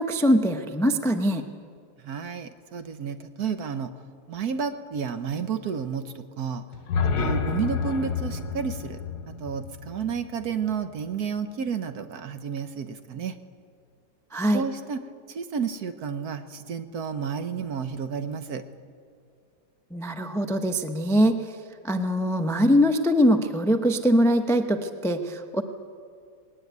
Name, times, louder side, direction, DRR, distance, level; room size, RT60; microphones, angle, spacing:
voice 1, 0.0-1.4 14.3-14.6 19.9-21.3 21.8-25.6, equal, 5° left, 7 dB, 0.3 m, -22 dB
voice 2, 2.0-3.9 4.3-6.6 7.2-9.0 9.3-13.3 14.5-15.0 15.3-18.6, right 6 dB, 60° right, 9 dB, 1.2 m, -31 dB
sound 1, 6.7-10.8, left 5 dB, 60° left, 1.6 m, -29 dB
19.5 x 18.0 x 9.4 m, 2.2 s
omnidirectional pair, 2.1 m